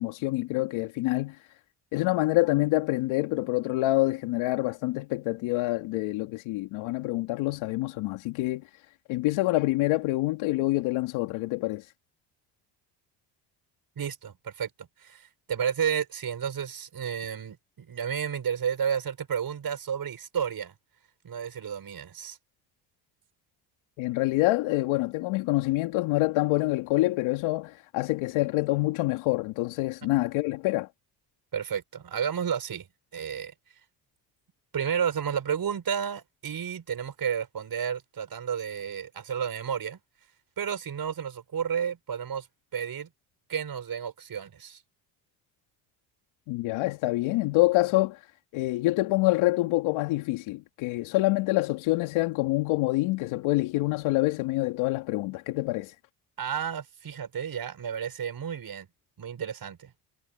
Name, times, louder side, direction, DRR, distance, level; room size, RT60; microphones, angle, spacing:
voice 1, 0.0-1.4 1.9-8.6 9.1-11.9 24.0-30.9 46.5-48.2 48.5-55.9, left 19 dB, 75° left, 2.4 m, -26 dB
voice 2, 14.0-20.7 21.2-22.4 31.5-32.9 33.1-33.5 34.7-40.0 40.6-42.5 42.7-43.1 43.5-44.8 56.4-58.9 59.2-59.9, right 8 dB, 50° right, 5.4 m, -31 dB
supercardioid pair, 65°, 47 cm